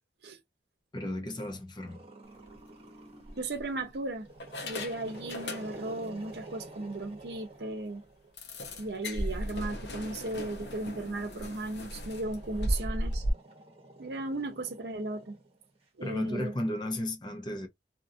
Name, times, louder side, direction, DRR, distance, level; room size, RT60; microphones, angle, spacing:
voice 1, 0.9-2.0 16.0-17.7, left 1 dB, 25° left, 0.6 m, -34 dB
Growling, 1.9-3.6 4.2-8.3 9.3-15.8, right 2 dB, 35° right, 1.0 m, -50 dB
sound 1, 2.3-2.6 3.2-3.9 4.4-6.1 6.4-6.5 6.9-7.0 7.4-7.5 8.4-13.3, equal, 70° left, 0.8 m, -36 dB
voice 2, 3.4-4.3 4.6-8.0 8.8-13.2 14.0-15.4 16.0-16.6, right 2 dB, 60° right, 0.7 m, -36 dB
2.8 x 2.5 x 2.6 m
head